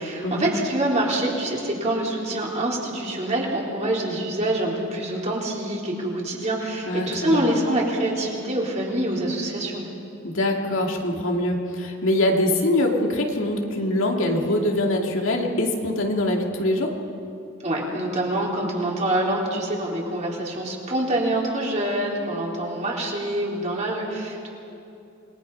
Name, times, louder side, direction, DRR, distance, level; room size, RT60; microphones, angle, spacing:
voice 1, 0.0-9.9 17.6-24.5, right 1 dB, 35° right, -3 dB, 3.9 m, -25 dB
voice 2, 6.9-7.4 10.2-16.9, left 1 dB, 75° left, 1 dB, 2.5 m, -23 dB
27.5 x 20.5 x 5.6 m, 2.7 s
head